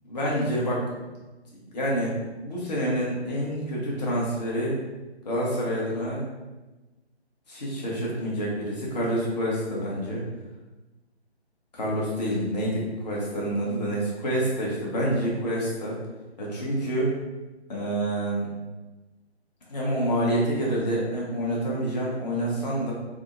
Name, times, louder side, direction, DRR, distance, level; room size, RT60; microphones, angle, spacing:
voice 1, 0.0-0.8 1.7-2.1 2.4-4.8 5.2-6.2 7.5-10.2 11.7-16.0 16.4-17.1 17.7-18.5 19.7-22.9, right 1 dB, 40° left, -4 dB, 1.0 m, -27 dB
3.5 x 2.0 x 3.8 m, 1.1 s
figure-of-eight pair, 150°, 33 cm